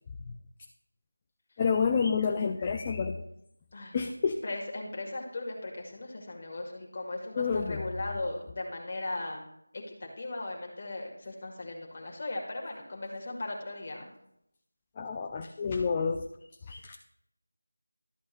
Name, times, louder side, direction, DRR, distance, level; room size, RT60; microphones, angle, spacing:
voice 1, 1.6-3.2 3.9-4.4 7.4-7.8 15.0-16.3 16.7-17.0, left 5 dB, 20° left, 4 dB, 0.4 m, -29 dB
voice 2, 3.7-4.1 4.4-9.5 9.7-14.1, left 2 dB, 35° left, 0 dB, 1.9 m, -38 dB
13.0 x 8.2 x 2.6 m, 0.79 s
figure-of-eight pair, 170°, 0 cm